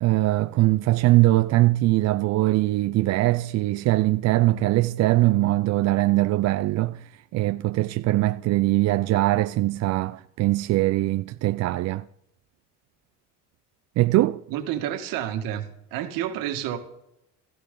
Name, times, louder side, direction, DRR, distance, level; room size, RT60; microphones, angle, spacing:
voice 1, 0.0-12.1 14.0-14.4, right 17 dB, 50° right, 0.4 m, -21 dB
voice 2, 14.5-15.6 15.9-16.8, right 11 dB, 75° right, 1.9 m, -29 dB
15.5 x 14.0 x 3.8 m
supercardioid pair, 105°, 34 cm